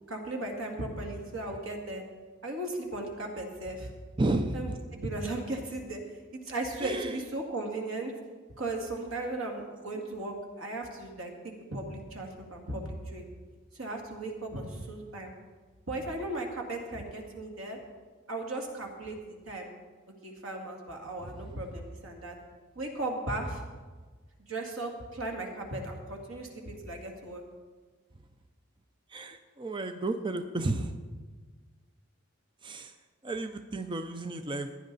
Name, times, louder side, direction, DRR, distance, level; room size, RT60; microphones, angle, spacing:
voice 1, 0.1-2.0 2.4-3.9 4.5-6.0 6.3-8.1 8.6-13.3 13.7-15.3 15.9-17.8 18.3-19.7 20.2-22.3 22.8-23.6 24.5-27.4, right 2 dB, 85° right, 2 dB, 2.1 m, -36 dB
voice 2, 4.2-4.8 6.8-7.2 9.9-10.1 21.2-21.6 29.1-31.0 32.6-33.0 33.2-34.8, right 2 dB, 25° right, 8 dB, 0.5 m, -33 dB
15.0 x 10.0 x 4.0 m, 1.4 s
head